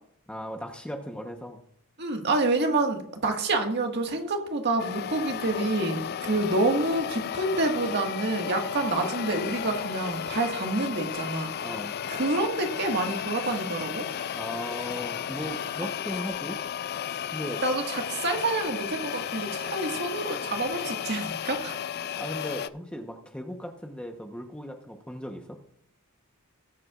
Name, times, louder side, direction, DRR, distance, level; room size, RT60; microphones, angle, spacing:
voice 1, 0.3-1.6 11.6-12.0 14.3-16.6 17.3-17.6 22.2-25.6, equal, 5° left, 3 dB, 1.0 m, -37 dB
voice 2, 2.0-11.5 12.1-14.1 17.6-21.8, right 2 dB, 50° right, 3 dB, 1.8 m, -28 dB
sound 1, 4.8-22.7, left 8 dB, 45° left, 0.3 m, -34 dB
20.0 x 8.4 x 2.5 m, 0.68 s
head